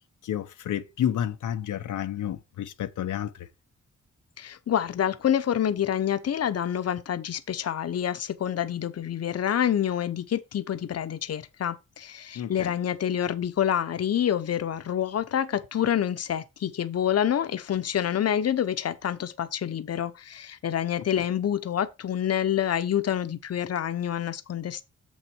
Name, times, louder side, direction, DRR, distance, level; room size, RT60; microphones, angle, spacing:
voice 1, 0.2-3.5 12.3-12.7 21.2-21.3, left 10 dB, 85° left, 0.7 m, -30 dB
voice 2, 4.4-24.8, left 9 dB, 55° left, 0.8 m, -27 dB
7.2 x 6.2 x 4.5 m
cardioid pair, 100°, 30 cm